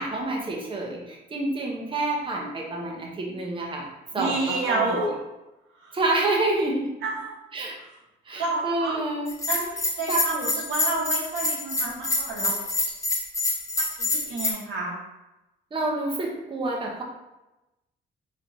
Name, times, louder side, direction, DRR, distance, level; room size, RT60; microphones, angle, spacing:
voice 1, 0.0-3.9 4.1-5.1 5.9-6.9 7.5-7.8 8.3-9.3 10.1-10.5 15.7-17.0, right 2 dB, 25° right, -1 dB, 0.8 m, -28 dB
voice 2, 4.1-5.1 5.8-6.0 7.0-7.3 8.4-9.0 9.5-12.5 14.0-14.9, right 3 dB, 90° right, -3 dB, 1.2 m, -29 dB
Bell, 9.3-14.5, left 2 dB, 15° left, 0.8 m, -26 dB
4.4 x 3.2 x 2.6 m, 0.99 s
cardioid pair, 90°, 20 cm